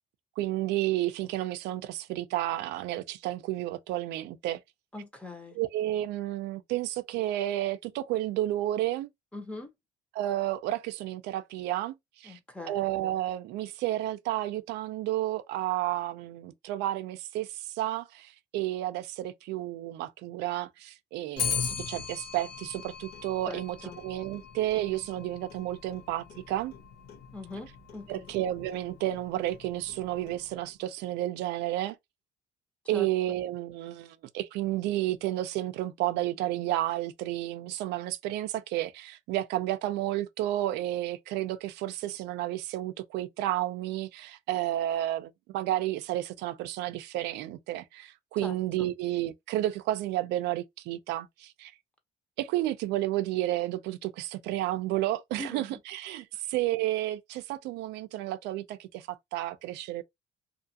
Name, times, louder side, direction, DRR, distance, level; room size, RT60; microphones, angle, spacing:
voice 1, 0.4-4.6 5.6-9.1 10.2-12.4 12.7-23.8 24.0-26.7 28.1-32.0 32.9-51.7 52.4-60.0, right 14 dB, 85° right, 0.4 m, -31 dB
voice 2, 4.9-5.6 9.3-9.7 12.2-12.8 23.5-24.0 27.3-28.3 32.9-33.1 48.4-48.9 55.4-55.8, left 1 dB, 5° left, 0.9 m, -42 dB
Clock, 21.4-30.7, left 7 dB, 80° left, 1.0 m, -39 dB
2.5 x 2.4 x 2.7 m
cardioid pair, 110°, 17 cm